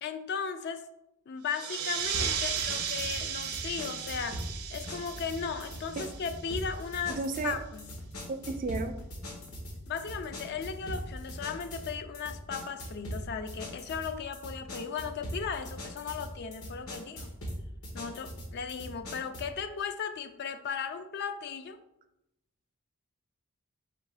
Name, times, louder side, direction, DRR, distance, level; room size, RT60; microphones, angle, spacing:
voice 1, 0.0-0.8 1.3-4.4 4.7-7.9 9.9-17.3 17.9-21.8, left 6 dB, 50° left, 0.3 m, -36 dB
sound 1, 1.5-6.7, right 8 dB, 85° right, 0.6 m, -35 dB
sound 2, 1.8-11.8, equal, 85° left, 0.7 m, -51 dB
sound 3, 2.1-19.6, equal, 70° left, 1.2 m, -41 dB
voice 2, 7.1-7.6 8.3-9.0, right 3 dB, 35° right, 0.3 m, -33 dB
3.6 x 2.9 x 4.7 m
head